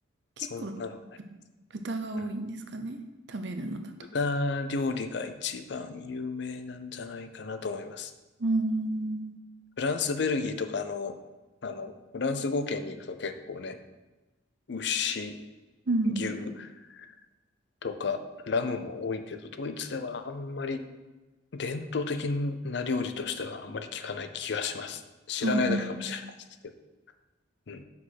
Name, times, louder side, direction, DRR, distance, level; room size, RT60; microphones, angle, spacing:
voice 1, 0.4-1.0 2.2-2.3 4.0-8.1 9.8-11.2 11.6-13.8 14.7-15.4 16.0-17.1 17.8-20.8 21.5-25.0 25.3-26.3 27.7-27.8, left 4 dB, 55° left, 9 dB, 0.5 m, -32 dB
voice 2, 1.7-3.0 3.3-3.8 8.4-9.3 15.9-16.3 25.4-26.0, right 2 dB, 60° right, 6 dB, 0.7 m, -30 dB
6.0 x 5.1 x 5.8 m, 1.1 s
head